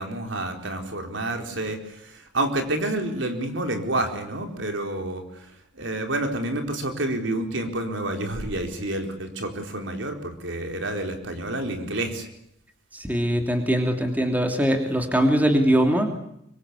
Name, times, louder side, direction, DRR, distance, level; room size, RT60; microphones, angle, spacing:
voice 1, 0.0-12.3, right 1 dB, 70° right, 5 dB, 4.4 m, -29 dB
voice 2, 12.9-16.2, equal, 10° right, 4 dB, 2.9 m, -22 dB
25.5 x 24.0 x 8.4 m, 0.76 s
head